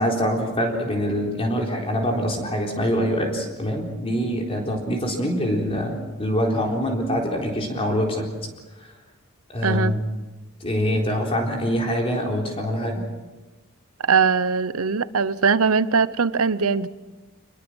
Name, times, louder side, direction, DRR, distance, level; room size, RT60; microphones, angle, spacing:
voice 1, 0.0-8.3 9.5-10.0 10.6-13.0, equal, 25° left, 0 dB, 4.0 m, -24 dB
voice 2, 9.6-9.9 14.1-16.9, right 5 dB, 80° right, 15 dB, 0.9 m, -21 dB
25.5 x 21.5 x 6.3 m, 1.2 s
head